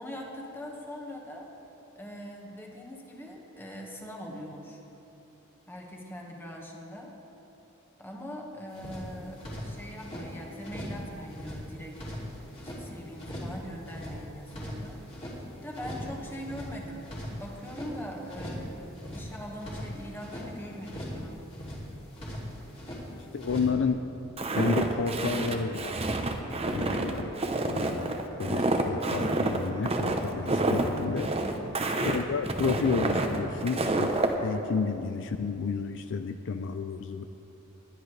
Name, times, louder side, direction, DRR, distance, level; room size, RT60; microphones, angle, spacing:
voice 1, 0.0-1.5 1.9-4.8 5.7-7.1 8.0-12.1 12.6-15.0 15.6-21.4 31.4-31.7, equal, 10° left, -1 dB, 1.6 m, -42 dB
sound 1, 8.7-10.3 10.6-11.0 11.3-12.8 13.2-13.6 13.8-15.4 15.7-16.1 16.4-17.9 18.3-18.7 18.9-20.5 20.8-21.2 21.5-23.0 23.4-23.7, equal, 25° left, 2.8 m, -39 dB
voice 2, 23.1-24.0 24.6-26.0 26.7-27.3 27.7-31.3 32.0-37.2, left 5 dB, 60° left, 8 dB, 0.4 m, -31 dB
Walk footsteps, 24.4-34.3, right 2 dB, 30° right, 0.8 m, -28 dB
21.0 x 10.5 x 3.3 m, 3.0 s
head